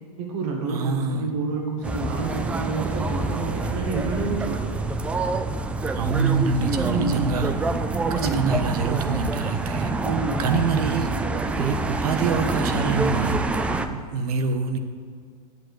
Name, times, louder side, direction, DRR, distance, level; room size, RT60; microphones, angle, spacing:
voice 1, 0.2-4.7 6.7-7.2 8.0-8.5 10.0-10.6, right 4 dB, 50° right, 1 dB, 1.8 m, -29 dB
voice 2, 0.7-1.3 5.9-7.5 8.2-9.9 10.4-11.1 11.6-13.4 13.9-14.8, right 5 dB, 70° right, 8 dB, 1.3 m, -25 dB
sound 1, 1.8-13.9, right 3 dB, 5° right, 0.3 m, -26 dB
9.1 x 7.7 x 7.9 m, 2.1 s
supercardioid pair, 150°, 20 cm